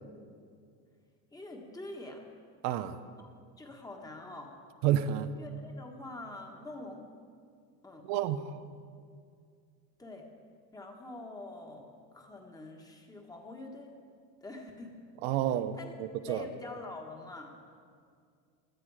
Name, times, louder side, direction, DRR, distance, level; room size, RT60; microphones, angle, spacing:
voice 1, 1.3-2.3 3.2-4.6 5.3-7.1 7.8-8.1 10.0-10.3 10.7-13.9 14.4-15.0 15.7-15.9 16.3-17.7, left 2 dB, 10° left, 2 dB, 1.5 m, -45 dB
voice 2, 2.6-3.0 4.8-5.3 8.1-8.6 15.2-16.4, right 11 dB, 85° right, 10 dB, 0.9 m, -30 dB
17.5 x 12.0 x 4.9 m, 2.2 s
cardioid pair, 150°, 38 cm